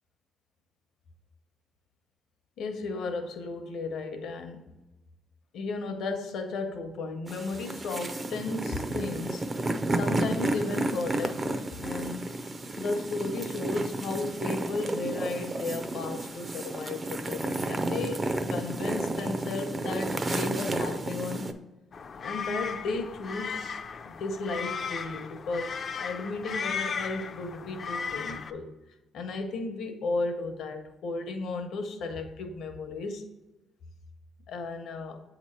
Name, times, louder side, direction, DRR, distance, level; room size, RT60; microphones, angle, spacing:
voice 1, 2.6-4.6 5.5-9.4 10.0-12.3 12.8-21.5 22.2-23.8 24.0-28.7 29.1-33.2 34.5-35.2, left 3 dB, 75° left, 6 dB, 0.8 m, -34 dB
sound 1, 7.3-21.5, right 2 dB, 30° right, 0.5 m, -32 dB
sound 2, 21.9-28.5, left 6 dB, 50° left, 0.4 m, -36 dB
8.0 x 2.9 x 4.3 m, 1.0 s
cardioid pair, 90°, 0 cm